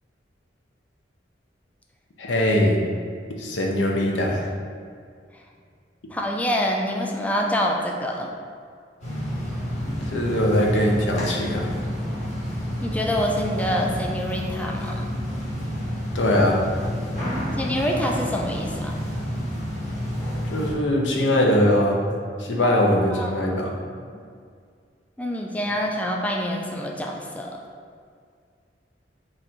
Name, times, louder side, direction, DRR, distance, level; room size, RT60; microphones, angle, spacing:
voice 1, 2.2-2.8 3.4-4.4 9.9-11.7 16.1-16.6 20.5-22.0 22.4-23.7, left 1 dB, 80° left, -1 dB, 0.7 m, -21 dB
voice 2, 6.1-8.3 12.8-15.1 17.6-18.9 22.6-22.8 23.1-23.5 25.2-27.6, equal, 10° left, 0 dB, 0.3 m, -26 dB
sound 1, 9.0-20.7, equal, 40° left, 1.3 m, -29 dB
4.0 x 2.6 x 4.3 m, 2.1 s
head